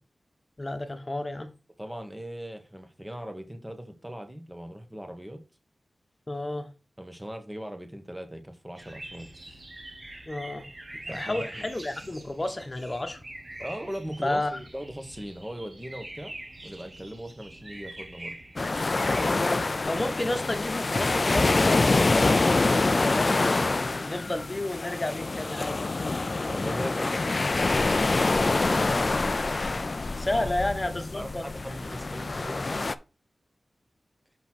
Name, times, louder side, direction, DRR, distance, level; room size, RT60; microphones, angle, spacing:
voice 1, 0.6-1.5 6.3-6.7 10.3-10.7 10.9-13.2 14.2-14.6 19.2-25.8 28.6-29.1 29.6-29.8 30.1-31.4, left 1 dB, 30° left, 1.3 m, -32 dB
voice 2, 1.8-5.4 7.0-9.6 10.1-10.2 11.1-11.6 13.6-16.3 16.6-18.4 26.1-26.2 26.5-28.5 30.1-30.5 31.1-32.9, equal, 10° right, 1.4 m, -39 dB
sound 1, 8.7-19.3, right 1 dB, 50° right, 1.6 m, -44 dB
sound 2, 18.6-32.9, left 3 dB, 45° left, 0.4 m, -26 dB
6.2 x 5.5 x 4.4 m
wide cardioid pair, 70°, 0 cm